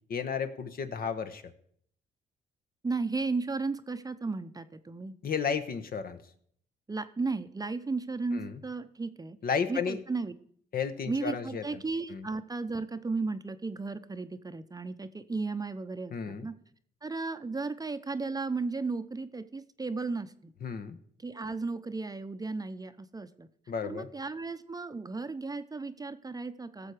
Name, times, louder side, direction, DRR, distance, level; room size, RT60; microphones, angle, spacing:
voice 1, 0.1-1.4 5.2-6.2 8.3-8.5 9.4-10.0 10.7-11.8 12.1-12.3 16.1-16.5 20.6-21.0 23.7-24.1, left 6 dB, 55° left, 10 dB, 1.0 m, -33 dB
voice 2, 2.8-5.1 6.9-9.4 9.7-10.3 11.1-16.5 17.0-20.5 21.2-23.5 23.8-26.9, right 3 dB, 20° right, 11 dB, 0.7 m, -35 dB
16.5 x 6.9 x 4.9 m, 0.65 s
cardioid pair, 80°, 18 cm